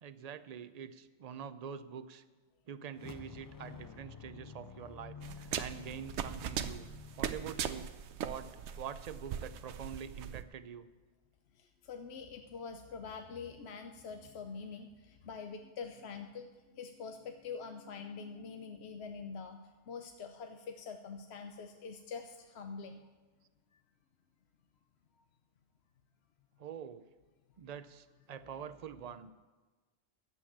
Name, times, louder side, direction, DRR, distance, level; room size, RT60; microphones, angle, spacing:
voice 1, 0.0-2.2 2.7-6.9 7.1-7.9 8.2-8.5 8.8-10.9 26.6-27.1 27.6-29.3, right 8 dB, 50° right, 13 dB, 0.5 m, -45 dB
sound 1, 2.9-8.3, left 6 dB, 35° left, 0.3 m, -51 dB
sound 2, 5.2-10.4, right 8 dB, 75° right, 0.9 m, -39 dB
voice 2, 11.5-16.5 16.7-23.1, left 5 dB, 70° left, 5 dB, 0.9 m, -45 dB
11.5 x 8.2 x 7.1 m, 1.3 s
omnidirectional pair, 1.2 m